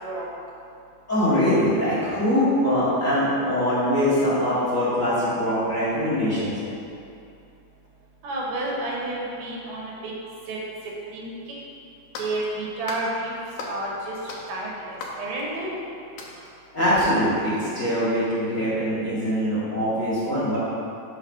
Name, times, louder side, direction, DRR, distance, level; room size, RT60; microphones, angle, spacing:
voice 1, 1.1-6.5 16.7-20.6, equal, 30° left, -10 dB, 1.8 m, -23 dB
voice 2, 8.2-10.1 10.5-10.6 11.1-11.3 12.2-13.3 13.7-15.7, right 2 dB, 85° right, -4 dB, 3.1 m, -30 dB
sound 1, 11.5-11.6 12.1-12.5 12.9-13.1 13.6-13.9 14.3-15.8 16.2-16.5, left 2 dB, 65° left, 1.7 m, -37 dB
6.3 x 6.3 x 5.5 m, 2.7 s
omnidirectional pair, 3.7 m